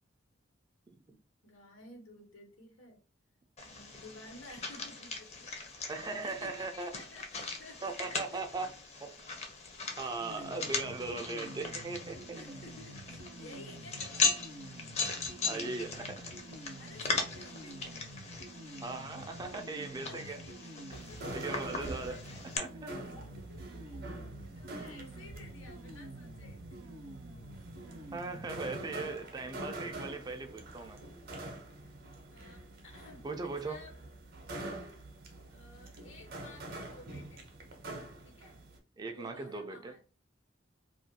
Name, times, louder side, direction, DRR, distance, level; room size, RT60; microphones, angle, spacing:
voice 1, 1.1-3.0 3.6-8.4 9.9-10.5 12.3-14.4 16.7-18.0 20.0-22.4 22.8-26.8 31.8-31.9 32.3-33.9 35.5-37.5 38.2-38.6 39.0-40.0, left 2 dB, 85° left, 1.0 m, -54 dB
sound 1, 3.6-22.6, left 4 dB, 35° left, 0.5 m, -39 dB
voice 2, 5.9-6.9 7.8-8.7 9.0-9.2 10.0-12.4 15.5-16.3 18.8-20.4 21.3-22.2 22.6-22.9 28.1-31.0 33.2-33.8 39.0-39.9, right 3 dB, 20° right, 0.3 m, -39 dB
sound 2, 10.2-29.0, right 1 dB, 90° right, 0.6 m, -48 dB
sound 3, 20.9-38.8, right 2 dB, 50° right, 0.7 m, -45 dB
2.4 x 2.2 x 2.6 m
head